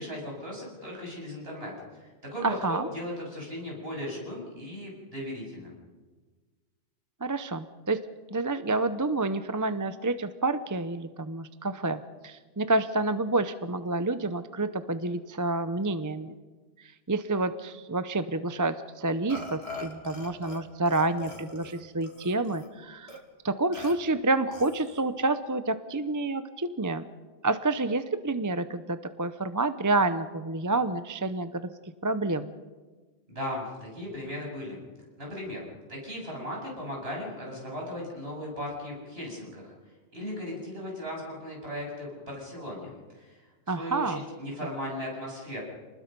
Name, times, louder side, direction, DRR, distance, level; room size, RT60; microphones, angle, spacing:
voice 1, 0.0-5.7 33.3-34.8 35.2-35.6 35.9-39.7 40.1-45.6, left 1 dB, 60° right, -2 dB, 8.1 m, -37 dB
voice 2, 2.4-2.9 7.2-8.0 8.3-16.4 16.8-23.2 23.4-27.0 27.4-31.7 32.0-32.5 43.7-44.2, right 2 dB, 20° right, 11 dB, 0.6 m, -29 dB
Burping eructation, 19.3-20.6 20.9-22.7 23.1-23.2 23.7-23.9 24.5-25.0, left 2 dB, 65° left, 3.0 m, -42 dB
28.5 x 20.5 x 5.4 m, 1.3 s
omnidirectional pair, 1.2 m